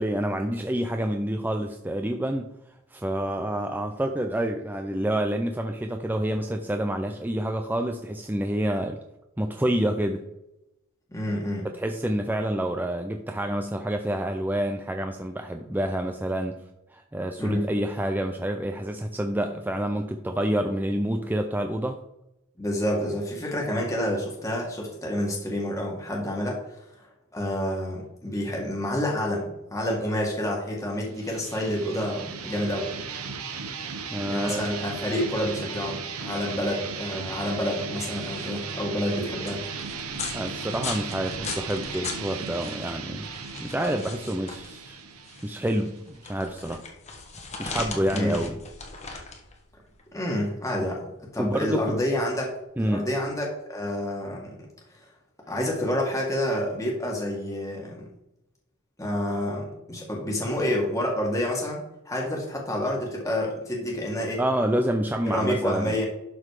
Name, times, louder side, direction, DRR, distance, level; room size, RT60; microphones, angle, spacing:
voice 1, 0.0-2.5 2.9-9.0 9.4-10.2 11.6-16.6 16.9-22.0 34.1-34.6 40.3-43.3 43.6-45.0 45.4-46.8 47.6-48.6 50.8-50.9 51.4-52.0 52.8-53.1 64.4-66.0, right 1 dB, 10° right, 4 dB, 0.4 m, -28 dB
voice 2, 11.1-11.7 17.4-17.7 22.6-26.6 27.3-32.9 34.3-39.6 48.1-48.4 50.1-51.1 51.3-52.5 52.8-54.6 55.5-58.1 59.0-64.4 65.2-66.0, left 1 dB, 15° left, -2 dB, 1.7 m, -28 dB
sound 1, 31.0-46.4, right 5 dB, 75° right, 1.0 m, -36 dB
sound 2, 38.1-52.6, left 4 dB, 30° left, 1.3 m, -39 dB
12.0 x 4.0 x 4.9 m, 0.90 s
head